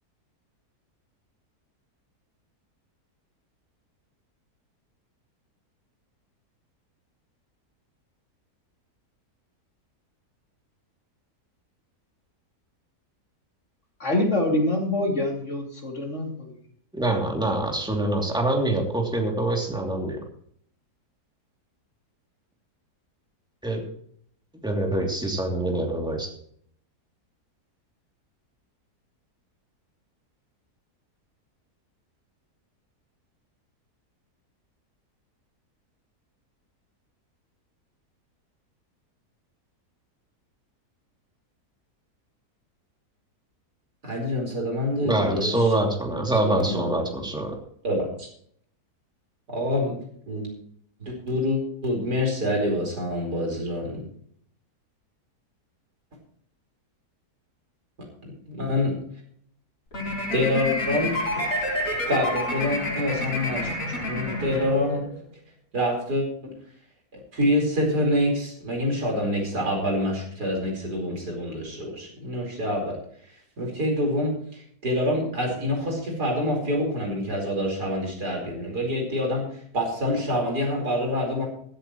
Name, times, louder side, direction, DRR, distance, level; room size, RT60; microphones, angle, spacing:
voice 1, 14.0-16.5, left 1 dB, 45° left, 0 dB, 3.2 m, -25 dB
voice 2, 16.9-20.2 23.6-23.8 24.6-26.3 45.0-47.6, right 1 dB, 5° right, 0 dB, 2.8 m, -25 dB
voice 3, 44.0-45.7 46.4-47.0 47.8-48.3 49.5-50.0 50.3-50.6 51.0-54.0 58.2-58.9 60.3-61.4 62.0-63.7 64.1-65.0 65.7-66.2 67.3-73.0 73.6-79.4 79.7-81.5, left 1 dB, 75° right, 0 dB, 5.2 m, -26 dB
sound 1, 59.9-65.2, left 1 dB, 85° left, 4.7 m, -29 dB
16.0 x 13.5 x 3.1 m, 0.62 s
omnidirectional pair, 1.7 m